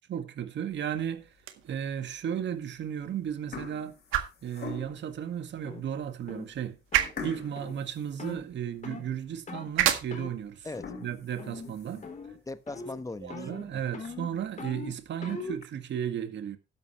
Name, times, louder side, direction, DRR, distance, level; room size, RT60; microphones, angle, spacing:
voice 1, 0.1-1.3 1.6-3.9 4.4-6.8 7.2-10.7 11.0-12.0 13.2-16.6, right 9 dB, 65° right, 1.9 m, -34 dB
sound 1, 0.7-1.2 1.8-1.9 2.8-3.0 3.3-5.2 5.8-5.9 6.2-6.4 7.2-8.9 9.3-9.4 9.9-10.0 10.6-12.2 12.7-12.8 13.2-13.3 13.6-13.7 14.0-14.1 15.0-15.6, left 4 dB, 55° left, 4.6 m, -44 dB
sound 2, 1.3-13.4, right 12 dB, 85° right, 1.7 m, -36 dB
sound 3, 5.6-5.8 6.3-6.5 6.9-7.1 7.6-7.8 8.2-8.4 8.8-9.1 9.5-9.7 10.1-10.4 10.7-11.1 11.4-11.8 12.0-12.4 12.7-13.0 13.3-15.6, left 4 dB, 40° left, 3.8 m, -41 dB
voice 2, 10.6-11.0 11.9-12.1 12.5-13.9, left 2 dB, 15° left, 1.2 m, -40 dB
12.5 x 11.0 x 3.2 m
cardioid pair, 90°, 20 cm